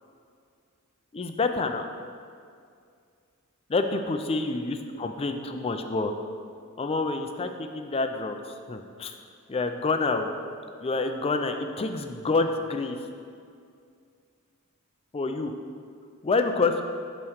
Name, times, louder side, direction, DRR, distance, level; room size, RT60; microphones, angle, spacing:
voice 1, 1.1-1.8 3.7-6.1 6.8-8.4 8.7-9.1 9.5-10.3 10.8-13.0 15.1-15.5 16.2-16.7, left 3 dB, 25° left, 6 dB, 0.4 m, -27 dB
8.6 x 3.1 x 6.4 m, 2.3 s
head